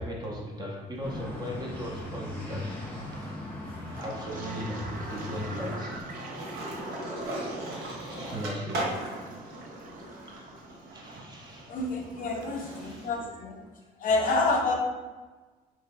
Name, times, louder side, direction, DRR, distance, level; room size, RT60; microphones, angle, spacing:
voice 1, 0.0-4.8 5.1-6.0 6.6-6.8 7.2-8.9 10.3-11.9 12.5-13.4, equal, 25° right, -2 dB, 0.8 m, -39 dB
sound 1, 1.0-6.0, left 1 dB, 10° left, 1.2 m, -38 dB
Skateboard, 1.0-2.5 2.9-13.1, right 1 dB, 70° right, 1.2 m, -39 dB
Toilet flush, 4.0-12.5, right 3 dB, 55° right, 0.6 m, -47 dB
voice 2, 11.7-13.6 14.0-14.7, left 3 dB, 55° left, 1 dB, 0.7 m, -28 dB
5.0 x 3.0 x 2.2 m, 1.3 s
cardioid pair, 110°, 17 cm